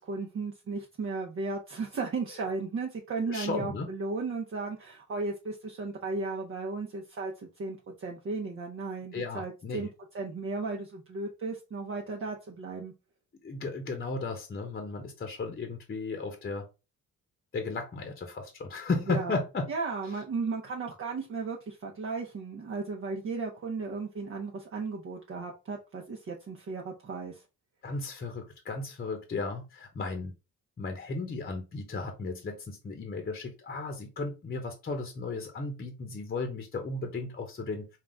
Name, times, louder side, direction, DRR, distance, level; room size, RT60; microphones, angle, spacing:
voice 1, 0.0-9.9 10.1-12.9 19.1-19.4 19.7-27.4, right 3 dB, 45° right, 0.9 m, -35 dB
voice 2, 3.3-3.9 9.1-9.9 13.4-16.7 17.5-19.7 27.8-30.3 30.8-37.9, left 3 dB, 30° left, 0.9 m, -35 dB
3.8 x 2.4 x 3.6 m
cardioid pair, 90°, 30 cm